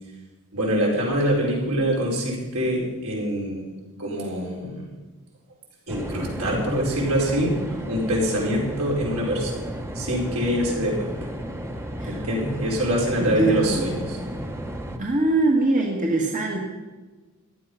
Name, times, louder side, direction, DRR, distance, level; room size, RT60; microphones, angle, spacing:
voice 1, 0.5-3.6 4.0-4.9 5.9-11.1 12.1-14.2, equal, 75° right, -3 dB, 5.0 m, -25 dB
sound 1, 5.9-15.0, equal, 10° right, 1.1 m, -33 dB
voice 2, 13.2-13.8 15.0-16.6, right 2 dB, 35° right, -1 dB, 1.6 m, -22 dB
15.0 x 11.5 x 5.7 m, 1.2 s
head